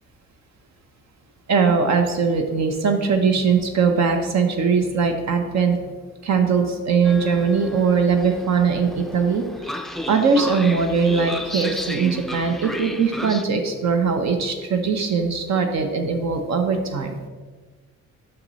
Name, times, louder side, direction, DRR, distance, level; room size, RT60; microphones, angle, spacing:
voice 1, 1.5-5.8 6.2-9.8 10.1-17.2, right 5 dB, 65° right, 5 dB, 0.8 m, -21 dB
Train, 7.0-13.4, left 1 dB, ahead, 0.4 m, -33 dB
6.1 x 5.9 x 4.0 m, 1.4 s
cardioid pair, 90°, 30 cm